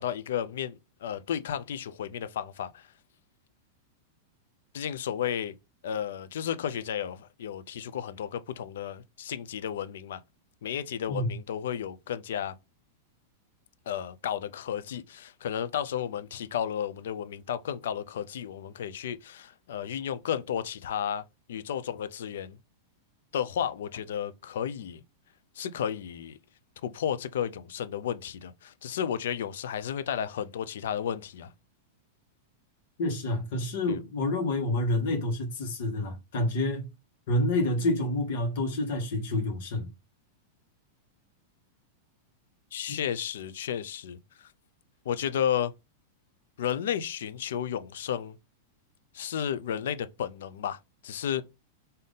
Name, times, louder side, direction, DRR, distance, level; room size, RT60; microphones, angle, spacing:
voice 1, 0.0-2.9 4.7-5.6 5.8-10.2 10.6-12.5 13.9-22.6 23.3-25.0 25.6-26.4 26.8-31.5 33.9-34.0 42.7-44.5 45.1-45.7 46.6-48.4 49.1-51.4, left 9 dB, 75° left, 0.4 m, -33 dB
voice 2, 33.0-36.9 37.3-39.9, left 1 dB, 60° left, 1.3 m, -28 dB
3.8 x 2.6 x 3.5 m
supercardioid pair, 165°, 0 cm